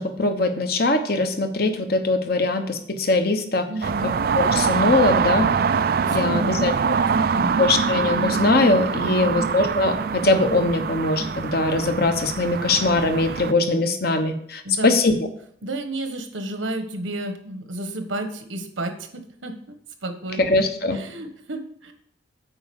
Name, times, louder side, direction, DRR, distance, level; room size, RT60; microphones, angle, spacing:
voice 1, 0.0-3.7 4.3-5.5 6.1-6.7 7.3-15.2 20.4-21.0, left 2 dB, 50° left, 7 dB, 1.1 m, -21 dB
voice 2, 3.7-4.2 6.1-6.7 7.1-7.6 9.0-9.5 14.6-15.0 15.6-19.6 20.0-20.4 20.9-21.9, right 1 dB, 85° right, 7 dB, 1.3 m, -31 dB
sound 1, 3.8-13.5, right 6 dB, 50° right, 0.3 m, -24 dB
8.8 x 4.8 x 7.0 m, 0.64 s
head